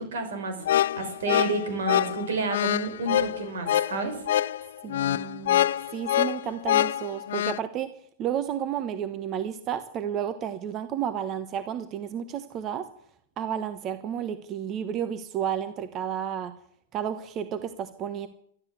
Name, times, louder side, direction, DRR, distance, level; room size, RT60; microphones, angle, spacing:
voice 1, 0.0-4.2, right 3 dB, 80° right, 7 dB, 5.7 m, -30 dB
sound 1, 0.6-7.6, left 12 dB, 75° left, 0.5 m, -25 dB
voice 2, 4.8-5.7 5.9-7.9 8.2-12.9 13.4-16.5 16.9-18.3, right 9 dB, 35° right, 11 dB, 1.2 m, -31 dB
13.0 x 12.5 x 8.3 m, 0.68 s
hypercardioid pair, 130°, 0 cm